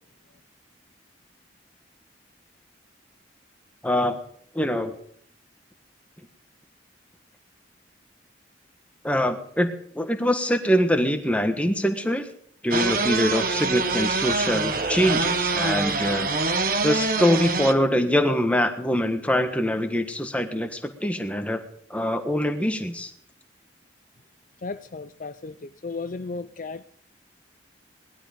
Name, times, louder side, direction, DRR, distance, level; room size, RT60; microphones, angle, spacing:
voice 1, 3.8-4.2 4.5-4.9 9.0-12.3 12.6-21.6 21.9-23.1, equal, 5° left, 1.5 m, -24 dB
sound 1, 12.7-17.7, right 3 dB, 45° right, 1.3 m, -25 dB
voice 2, 24.6-26.9, left 3 dB, 45° left, 0.5 m, -35 dB
19.0 x 12.5 x 5.2 m
head